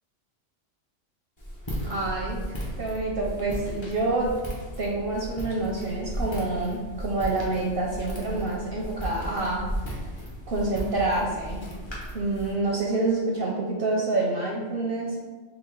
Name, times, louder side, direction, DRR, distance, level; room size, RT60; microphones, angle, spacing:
Walk footsteps, 1.4-12.5, equal, 25° left, 0.7 m, -35 dB
voice 1, 1.8-2.4 2.8-4.3 4.8-10.0 10.5-11.6 12.1-15.2, right 2 dB, 60° right, -2 dB, 0.6 m, -27 dB
4.0 x 2.2 x 4.4 m, 1.3 s
omnidirectional pair, 1.3 m